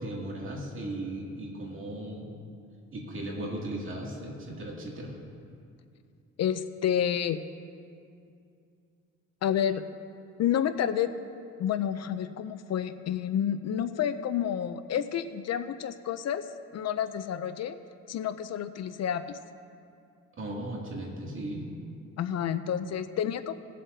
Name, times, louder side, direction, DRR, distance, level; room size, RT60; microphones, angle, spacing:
voice 1, 0.0-2.3 2.9-5.2 20.4-21.7, right 1 dB, 45° right, -2 dB, 2.4 m, -36 dB
voice 2, 6.4-7.4 9.4-9.8 10.4-11.1 11.6-16.4 16.7-17.8 18.1-19.4 22.2-23.6, left 9 dB, 60° left, 12 dB, 0.5 m, -29 dB
19.0 x 7.5 x 2.7 m, 2.5 s
cardioid pair, 90°, 30 cm